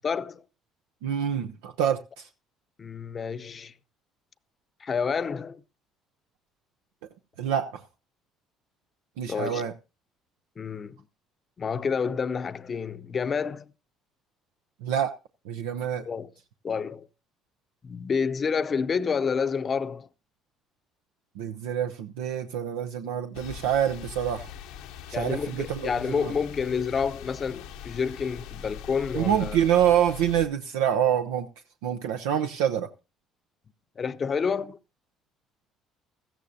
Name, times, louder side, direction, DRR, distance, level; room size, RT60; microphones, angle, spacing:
voice 1, 0.0-0.4 2.8-3.7 4.8-5.6 9.3-9.7 10.6-11.0 11.6-13.6 16.1-16.3 16.6-17.1 17.8-20.1 25.1-29.6 34.0-34.8, left 6 dB, 40° left, 0.7 m, -29 dB
voice 2, 1.0-2.3 7.4-7.8 9.2-9.7 14.8-15.1 15.5-16.0 21.4-24.5 25.1-26.3 29.1-31.5 31.8-32.9, right 9 dB, 85° right, 0.6 m, -26 dB
sound 1, 23.3-30.5, left 9 dB, 80° left, 1.0 m, -42 dB
16.5 x 14.0 x 2.7 m
supercardioid pair, 70°, 0 cm